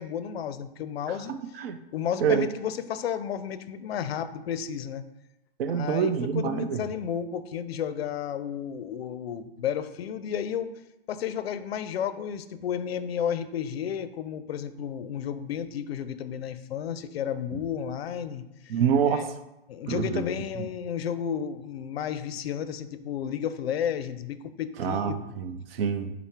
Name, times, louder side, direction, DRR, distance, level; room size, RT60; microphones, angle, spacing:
voice 1, 0.0-1.3 1.9-5.0 5.7-10.7 11.1-18.7 19.1-19.2 19.7-25.3, left 8 dB, 85° left, 12 dB, 0.5 m, -32 dB
voice 2, 1.1-1.8 2.2-2.5 5.6-6.8 17.5-17.6 18.7-19.4 19.9-20.2 24.8-26.1, right 7 dB, 70° right, 9 dB, 0.5 m, -27 dB
5.6 x 2.1 x 4.5 m, 0.91 s
hypercardioid pair, 150°, 30 cm